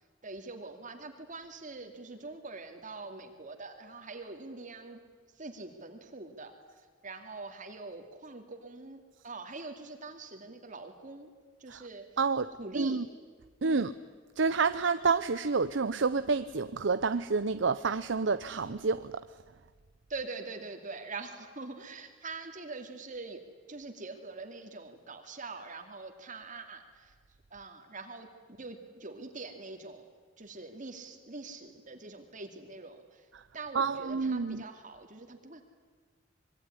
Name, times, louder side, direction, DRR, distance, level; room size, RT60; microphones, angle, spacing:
voice 1, 0.2-5.0 5.3-6.5 7.0-11.3 11.6-12.1 12.6-13.0 13.6-13.9 20.1-23.4 23.7-27.1 27.5-28.3 28.6-30.1 30.4-33.3 33.5-35.6, right 3 dB, 45° right, 5 dB, 2.5 m, -44 dB
voice 2, 12.2-13.1 13.6-13.9 14.4-19.2 33.3-33.4 33.7-34.6, right 4 dB, 70° right, 12 dB, 0.7 m, -29 dB
26.0 x 22.5 x 9.9 m, 1.4 s
head